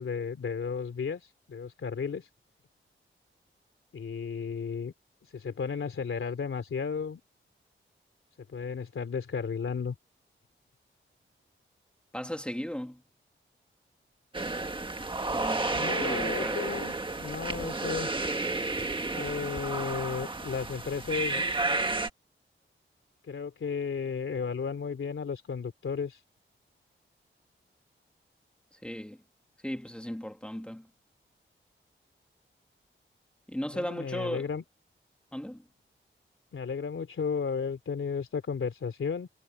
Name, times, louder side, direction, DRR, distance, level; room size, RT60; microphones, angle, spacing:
voice 1, 0.0-2.3 3.9-4.9 5.2-7.2 8.5-9.9 15.7-18.1 19.1-21.4 23.3-26.2 33.7-34.6 36.5-39.3, left 6 dB, 80° left, 3.0 m, -34 dB
voice 2, 12.1-13.0 15.3-16.6 28.8-29.2 29.6-30.9 33.5-34.5 35.3-35.6, equal, 5° left, 1.9 m, -36 dB
sound 1, 14.3-22.1, right 3 dB, 25° right, 1.6 m, -31 dB
wide cardioid pair, 145°, 21 cm